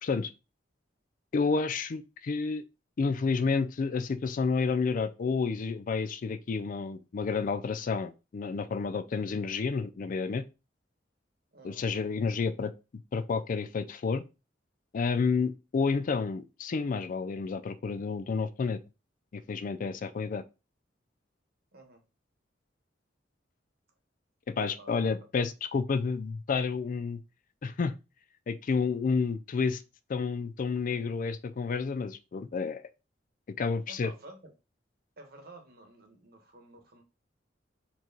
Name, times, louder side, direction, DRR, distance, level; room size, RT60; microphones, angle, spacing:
voice 1, 1.3-2.6 3.0-10.4 11.6-12.7 13.1-14.2 14.9-18.8 19.3-20.4 24.6-27.2 27.6-27.9 28.5-29.8 30.1-32.8 33.6-34.1, left 4 dB, 45° left, 0.4 m, -30 dB
voice 2, 11.5-11.9 21.7-22.0 24.8-24.9 33.9-34.5 35.2-37.0, right 2 dB, 55° right, 1.1 m, -51 dB
4.4 x 3.0 x 3.9 m
head